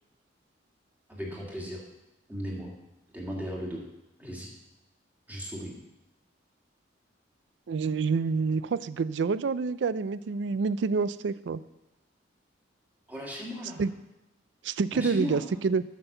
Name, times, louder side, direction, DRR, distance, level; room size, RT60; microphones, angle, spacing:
voice 1, 1.1-1.8 2.3-2.7 3.1-3.8 4.2-4.5 5.3-5.7 13.1-13.8 14.9-15.4, equal, 10° right, -2 dB, 2.0 m, -36 dB
voice 2, 7.7-11.6 13.8-13.9 14.6-15.8, right 4 dB, 75° right, 16 dB, 0.4 m, -27 dB
9.3 x 6.2 x 6.7 m, 0.92 s
head